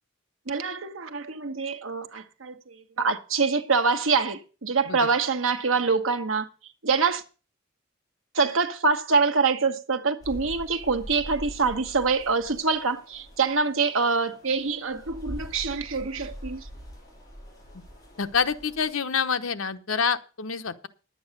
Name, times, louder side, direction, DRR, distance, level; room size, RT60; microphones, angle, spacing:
voice 1, 0.5-6.5 6.8-7.2 8.3-16.7, right 4 dB, 70° right, 1.2 m, -25 dB
sound 1, 10.2-18.9, equal, 20° left, 7.2 m, -43 dB
voice 2, 18.2-20.9, left 6 dB, 70° left, 0.9 m, -27 dB
10.5 x 8.7 x 6.5 m
head